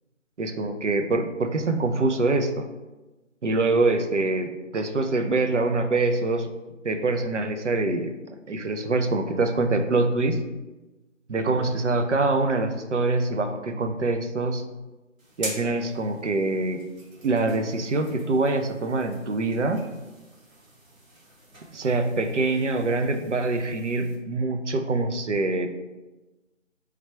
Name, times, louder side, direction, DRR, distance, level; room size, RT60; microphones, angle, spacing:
voice 1, 0.4-2.7 3.4-6.5 6.8-8.1 8.5-10.4 11.3-14.6 15.4-16.8 17.2-19.8 21.7-25.7, right 3 dB, 65° right, 6 dB, 0.5 m, -24 dB
sound 1, 15.2-24.2, right 2 dB, 90° right, 1.4 m, -44 dB
3.3 x 2.4 x 4.4 m, 1.1 s
figure-of-eight pair, 175°, 39 cm